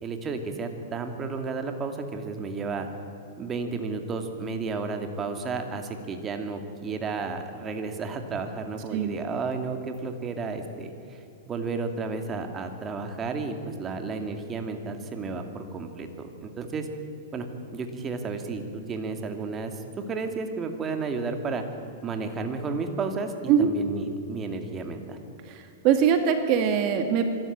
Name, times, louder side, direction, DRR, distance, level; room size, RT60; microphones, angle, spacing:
voice 1, 0.0-2.9 3.4-11.2 11.5-16.9 17.3-17.5 17.7-21.6 22.0-23.3 23.6-25.2, right 4 dB, 20° right, 6 dB, 2.4 m, -32 dB
voice 2, 25.8-27.3, right 8 dB, 40° right, 7 dB, 2.0 m, -21 dB
25.0 x 13.5 x 8.8 m, 2.8 s
hypercardioid pair, 135°, 0 cm